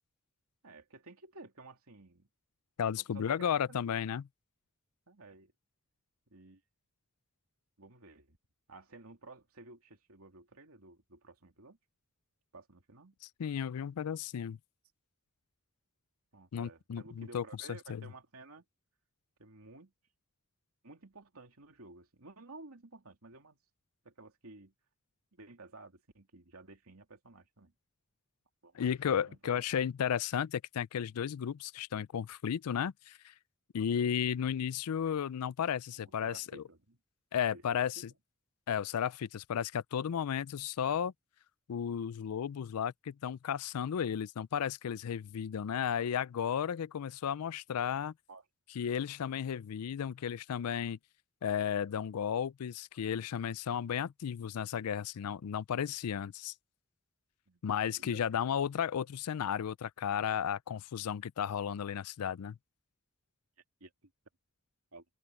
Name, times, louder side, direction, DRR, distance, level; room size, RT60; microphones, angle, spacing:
voice 1, 0.6-2.3 3.0-3.8 5.1-5.5 6.3-6.6 7.8-8.4 8.7-11.8 12.5-13.1 16.3-18.6 19.4-19.9 20.8-23.6 24.0-24.7 25.3-27.7 28.6-29.6 35.9-37.0 37.5-37.6 48.3-48.4 57.5-57.6 58.0-58.2 63.8-64.1 64.9-65.0, right 3 dB, 70° right, 2.9 m, -53 dB
voice 2, 2.8-4.3 13.4-14.6 16.5-18.0 28.7-33.3 33.7-36.6 37.3-38.1 38.7-41.1 41.7-48.1 48.7-51.0 51.4-56.5 57.6-62.6, left 8 dB, 85° left, 0.4 m, -34 dB
open air
head